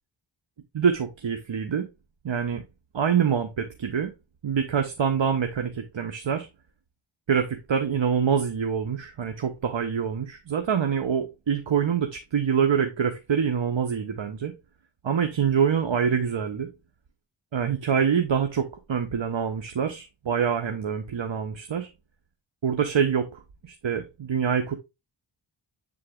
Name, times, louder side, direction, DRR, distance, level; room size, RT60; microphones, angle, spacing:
voice 1, 0.7-1.9 2.2-2.6 2.9-4.1 4.4-6.5 7.3-14.5 15.0-16.7 17.5-21.9 22.6-24.8, right 7 dB, 65° right, 6 dB, 1.0 m, -25 dB
7.7 x 3.8 x 3.6 m, 0.24 s
cardioid pair, 55°, 49 cm